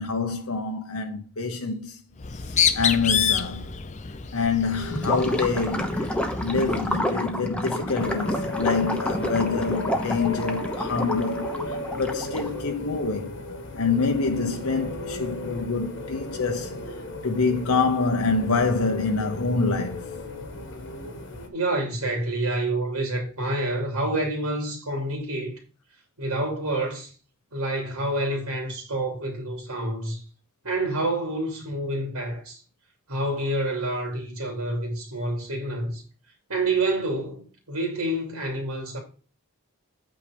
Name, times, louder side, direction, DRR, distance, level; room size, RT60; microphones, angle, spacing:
voice 1, 0.0-2.0 2.4-3.6 4.3-13.4 13.8-16.8 17.2-20.1, left 4 dB, 75° left, 1.0 m, -26 dB
Bird, 2.2-7.0, left 8 dB, 30° left, 0.6 m, -28 dB
Gurgling / Liquid, 4.9-12.6, left 1 dB, 5° left, 0.9 m, -29 dB
sound 1, 8.0-21.5, left 2 dB, 55° left, 1.5 m, -34 dB
voice 2, 21.5-25.5 26.2-27.1 27.5-30.2 30.6-32.6 33.1-36.0 36.5-39.0, right 2 dB, 75° right, 3.0 m, -28 dB
8.7 x 4.5 x 5.2 m
head